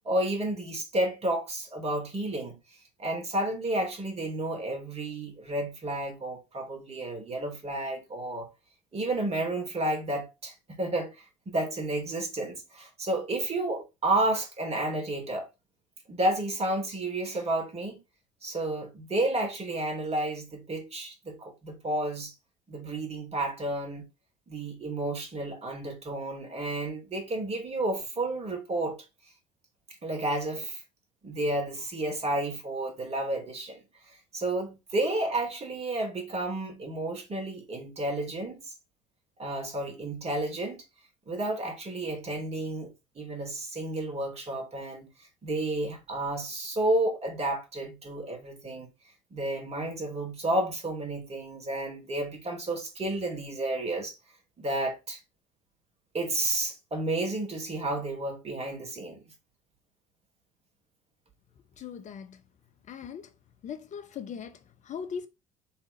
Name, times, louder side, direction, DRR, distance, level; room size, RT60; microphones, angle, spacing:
voice 1, 0.0-2.6 3.0-8.5 8.9-15.5 16.1-18.0 18.4-22.3 22.7-24.1 24.5-29.0 30.0-30.8 31.2-38.7 39.4-40.8 41.3-48.9 49.3-54.1 54.6-55.2 56.1-59.2, right 1 dB, 40° right, 3.4 m, -31 dB
voice 2, 61.8-62.4 62.9-63.3 63.6-65.3, left 7 dB, 45° left, 0.8 m, -39 dB
5.7 x 3.9 x 5.1 m
hypercardioid pair, 60°, 17 cm